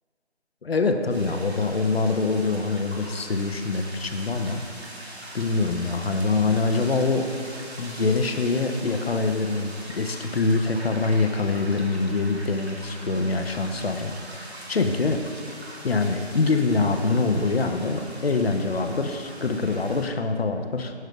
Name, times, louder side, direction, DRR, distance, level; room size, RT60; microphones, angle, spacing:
voice 1, 0.6-4.6 5.3-15.3 15.8-20.9, left 3 dB, 60° left, 6 dB, 0.5 m, -24 dB
sound 1, 1.1-20.1, right 1 dB, 70° right, 1.3 m, -42 dB
6.5 x 3.2 x 4.9 m, 2.1 s
figure-of-eight pair, 180°, 34 cm